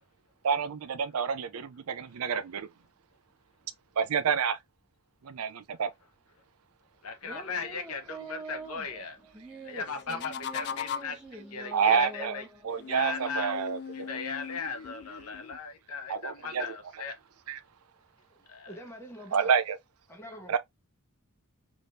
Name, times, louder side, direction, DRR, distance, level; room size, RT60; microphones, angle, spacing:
voice 1, 0.4-2.7 4.0-4.6 5.2-5.9 11.7-12.4 12.6-14.1 16.1-16.6 17.5-17.6 19.3-19.8 20.5-20.6, right 6 dB, 75° right, 0.5 m, -28 dB
voice 2, 7.0-9.2 9.6-17.2 18.5-18.7, left 4 dB, 80° left, 0.9 m, -38 dB
sound 1, 7.2-13.1, right 2 dB, 5° right, 1.2 m, -45 dB
sound 2, 9.9-11.3 12.7-15.6, left 7 dB, 50° left, 0.3 m, -39 dB
voice 3, 18.3-19.5 20.1-20.5, equal, 10° left, 0.9 m, -45 dB
3.3 x 3.1 x 2.6 m
head